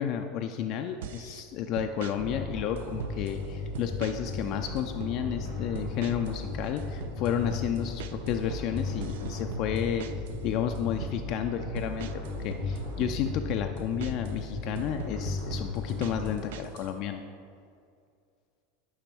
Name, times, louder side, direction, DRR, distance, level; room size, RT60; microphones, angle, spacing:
voice 1, 0.0-10.1 10.4-17.2, left 9 dB, 45° left, 6 dB, 0.4 m, -32 dB
sound 1, 1.0-1.4 1.8-2.2 2.8-3.4 3.7-4.4 4.6-5.2 5.7-6.4 6.6-10.4 10.7-11.2 11.8-14.4 14.7-16.9, right 9 dB, 65° right, 0.3 m, -41 dB
sound 2, 2.1-16.3, left 2 dB, 80° right, 2.0 m, -36 dB
9.8 x 5.8 x 3.4 m, 2.3 s
figure-of-eight pair, 80°, 0 cm